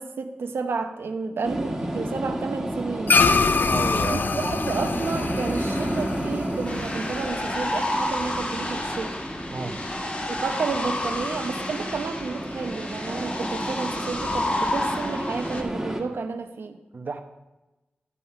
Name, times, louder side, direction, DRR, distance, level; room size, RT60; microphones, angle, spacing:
voice 1, 0.0-3.2 4.1-9.2 10.3-16.8, right 4 dB, 90° right, 6 dB, 0.8 m, -31 dB
sound 1, 1.4-16.0, right 1 dB, 10° right, 1.6 m, -32 dB
sound 2, 3.1-7.7, left 4 dB, 60° left, 0.4 m, -24 dB
voice 2, 3.6-4.2 9.5-9.8 16.9-17.2, right 4 dB, 55° right, 6 dB, 0.9 m, -32 dB
sound 3, 6.7-15.6, left 1 dB, 35° left, 1.3 m, -30 dB
11.0 x 5.7 x 5.6 m, 1.0 s
wide cardioid pair, 85°, 4 cm